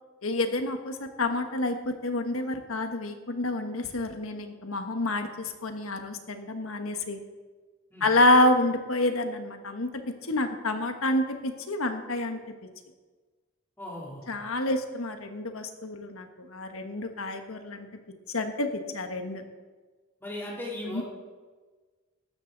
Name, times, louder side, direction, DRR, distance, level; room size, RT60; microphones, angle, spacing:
voice 1, 0.2-7.2 8.0-9.9 10.3-12.4 14.3-17.9 18.3-18.7 18.9-19.4 20.9-21.0, left 2 dB, 90° left, 6 dB, 1.4 m, -28 dB
voice 2, 13.8-14.3 20.2-21.0, left 1 dB, 10° left, -4 dB, 3.4 m, -37 dB
15.0 x 12.5 x 4.0 m, 1.4 s
head